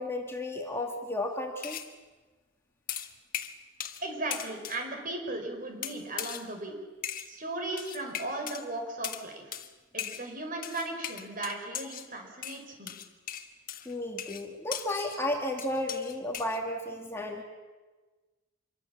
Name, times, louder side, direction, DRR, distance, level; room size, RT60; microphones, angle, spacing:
voice 1, 0.0-1.8 13.9-17.4, left 1 dB, 10° left, 1 dB, 2.2 m, -33 dB
sound 1, 1.6-1.9 2.9-4.0 4.3-4.8 5.8-6.5 7.0-7.3 7.8-8.6 9.0-9.2 9.5-9.7 10.0-10.3 10.6-12.1 12.4-15.2 15.6-16.6, left 9 dB, 45° left, 1.6 m, -38 dB
voice 2, 4.0-6.7 7.3-9.5 9.9-13.0, right 2 dB, 45° right, 3 dB, 5.7 m, -36 dB
26.5 x 24.0 x 7.4 m, 1.3 s
head